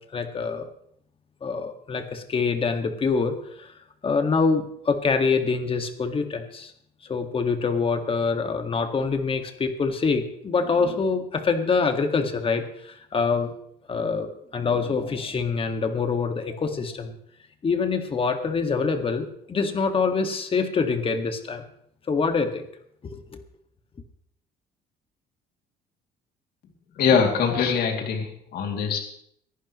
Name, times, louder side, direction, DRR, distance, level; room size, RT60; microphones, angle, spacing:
voice 1, 0.1-0.7 1.4-3.7 4.0-6.7 7.0-13.5 13.9-17.2 17.6-21.6 22.1-22.7 23.0-23.4, left 4 dB, 35° left, 6 dB, 1.9 m, -25 dB
voice 2, 27.0-29.0, left 6 dB, 65° left, 2 dB, 2.8 m, -23 dB
24.5 x 11.5 x 3.1 m, 0.70 s
cardioid pair, 110°, 17 cm